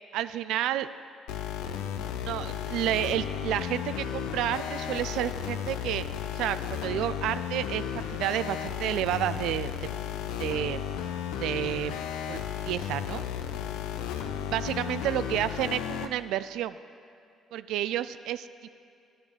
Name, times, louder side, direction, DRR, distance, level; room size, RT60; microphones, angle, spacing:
voice 1, 0.1-0.9 2.2-6.0 6.3-9.9 10.4-10.8 11.4-12.0 12.3-12.4 12.7-13.2 14.4-16.8 17.5-18.7, right 12 dB, 75° right, 14 dB, 0.3 m, -30 dB
sound 1, 1.3-16.1, left 9 dB, 80° left, 0.5 m, -34 dB
10.0 x 9.9 x 4.7 m, 2.5 s
hypercardioid pair, 55°, 0 cm